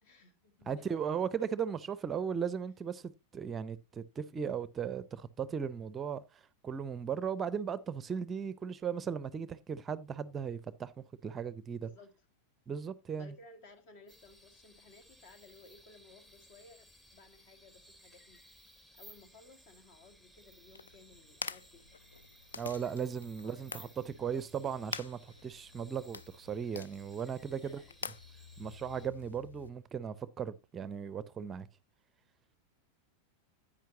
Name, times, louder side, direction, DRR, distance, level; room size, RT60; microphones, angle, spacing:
voice 1, 0.0-1.7 11.7-12.2 13.1-22.1 23.4-24.5 27.6-28.0, left 3 dB, 50° left, 1.9 m, -58 dB
voice 2, 0.7-11.9 12.7-13.3 22.6-27.8 28.6-31.7, right 7 dB, 20° right, 0.5 m, -37 dB
sound 1, 14.1-29.1, right 1 dB, ahead, 0.9 m, -60 dB
sound 2, 20.7-29.7, left 6 dB, 70° left, 0.5 m, -47 dB
10.5 x 8.7 x 2.8 m
figure-of-eight pair, 90°, 0 cm